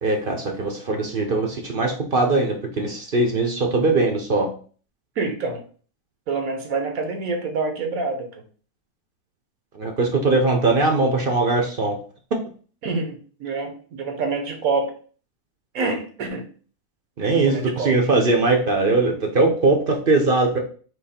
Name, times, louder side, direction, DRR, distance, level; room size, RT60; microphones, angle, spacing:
voice 1, 0.0-4.5 9.7-12.0 17.2-20.6, right 3 dB, 45° right, 3 dB, 0.9 m, -20 dB
voice 2, 5.2-5.6 6.3-8.3 12.8-14.9 15.7-16.4 17.2-17.9, right 3 dB, 75° right, 4 dB, 1.4 m, -26 dB
4.0 x 3.1 x 4.3 m, 0.41 s
omnidirectional pair, 1.5 m